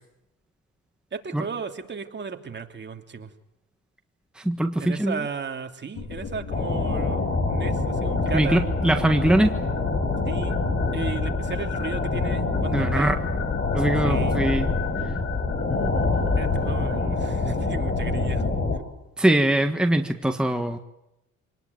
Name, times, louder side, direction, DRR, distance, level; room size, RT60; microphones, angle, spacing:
voice 1, 1.1-3.3 4.8-8.6 10.3-10.5 10.9-13.1 14.0-14.4 16.4-18.4, right 5 dB, 35° right, 4 dB, 2.7 m, -35 dB
voice 2, 4.4-5.2 8.3-9.6 12.7-13.1 13.7-14.7 19.2-20.8, right 1 dB, 5° right, 5 dB, 1.5 m, -22 dB
sound 1, 5.9-18.5, left 5 dB, 55° left, 4.1 m, -35 dB
sound 2, 6.5-18.8, left 3 dB, 35° left, 4.9 m, -26 dB
26.5 x 19.5 x 9.4 m, 0.92 s
cardioid pair, 90°, 30 cm